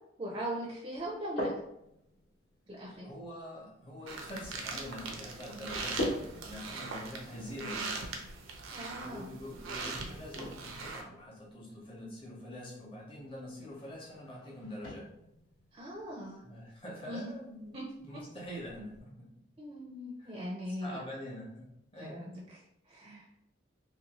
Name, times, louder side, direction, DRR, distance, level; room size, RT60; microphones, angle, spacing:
voice 1, 0.2-1.5 2.7-3.1 8.7-9.3 15.7-16.4 17.1-17.3 17.7-17.8 19.6-21.0 22.0-22.6 22.9-23.2, equal, 25° right, -3 dB, 0.4 m, -40 dB
sound 1, 0.9-19.0, left 1 dB, 60° left, 0.9 m, -45 dB
voice 2, 3.0-8.1 9.0-15.1 16.4-19.5 20.2-20.4 20.8-22.3, left 1 dB, 30° left, -3 dB, 0.8 m, -45 dB
sound 2, 4.1-11.0, right 4 dB, 85° right, 0.5 m, -41 dB
2.6 x 2.2 x 2.9 m, 0.78 s
head